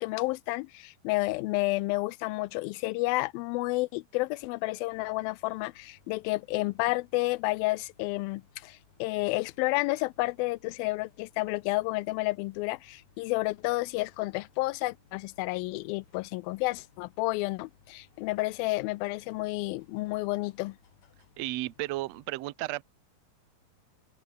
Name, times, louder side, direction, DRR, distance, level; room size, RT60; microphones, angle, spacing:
voice 1, 0.0-20.8, left 22 dB, 90° left, 2.4 m, -31 dB
sound 1, 4.9-22.3, left 6 dB, 55° left, 4.9 m, -63 dB
voice 2, 21.4-22.8, right 17 dB, 90° right, 1.4 m, -33 dB
open air
omnidirectional pair, 4.1 m